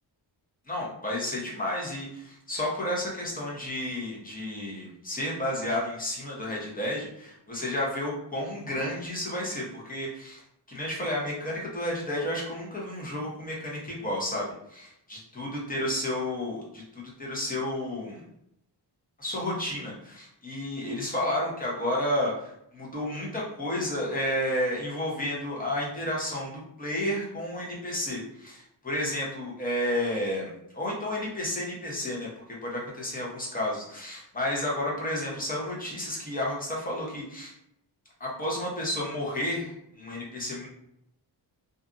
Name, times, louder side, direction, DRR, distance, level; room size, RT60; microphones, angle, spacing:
voice 1, 0.7-10.4 10.7-18.2 19.2-32.3 32.6-37.5 38.2-40.7, left 1 dB, 20° left, -4 dB, 0.8 m, -31 dB
2.6 x 2.4 x 2.5 m, 0.76 s
wide cardioid pair, 125°, 44 cm